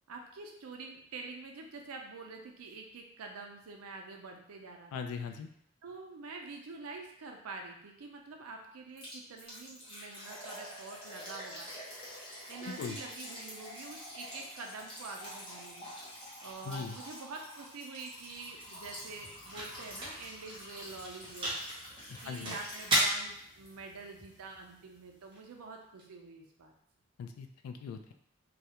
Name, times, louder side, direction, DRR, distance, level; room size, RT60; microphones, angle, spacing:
voice 1, 0.1-5.1 5.8-11.7 12.5-15.9 16.4-21.6 22.2-26.7, right 4 dB, 90° right, 3 dB, 0.5 m, -46 dB
voice 2, 4.9-5.5 12.7-13.0 16.6-17.0 22.1-22.6 27.2-28.1, left 6 dB, 85° left, 11 dB, 0.3 m, -40 dB
Liquid, 9.0-23.4 23.7-23.8 24.2-24.3, equal, 25° left, 0.7 m, -47 dB
sound 1, 17.9-26.0, right 1 dB, 25° right, 0.6 m, -37 dB
2.3 x 2.0 x 2.8 m, 0.71 s
head